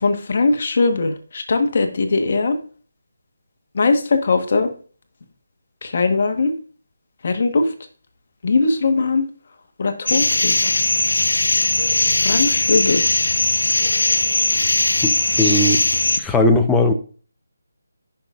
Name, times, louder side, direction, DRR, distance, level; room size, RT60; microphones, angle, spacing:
voice 1, 0.0-2.5 3.7-4.7 5.8-6.5 7.2-7.7 8.4-9.2 9.8-10.5 12.2-13.0, left 3 dB, 50° left, 6 dB, 1.3 m, -19 dB
sound 1, 10.1-16.2, left 2 dB, 75° left, 0.9 m, -19 dB
voice 2, 15.4-15.8 16.2-16.9, left 2 dB, 5° left, 4 dB, 0.7 m, -17 dB
15.5 x 5.7 x 2.5 m, 0.41 s
figure-of-eight pair, 160°, 0 cm